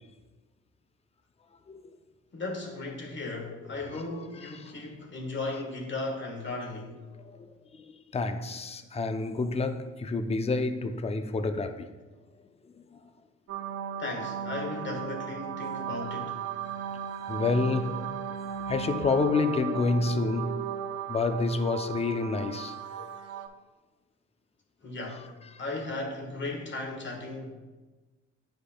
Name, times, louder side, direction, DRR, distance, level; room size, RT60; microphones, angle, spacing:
voice 1, 2.3-7.0 14.0-16.4 24.8-25.3 25.6-27.5, left 2 dB, 40° left, 1.5 m, -36 dB
voice 2, 7.7-11.9 17.3-18.1 18.7-20.7 21.1-23.1, left 3 dB, 20° left, 0.5 m, -29 dB
sound 1, 13.5-23.5, right 8 dB, 55° right, 0.5 m, -36 dB
9.7 x 5.2 x 2.3 m
cardioid pair, 90°, 30 cm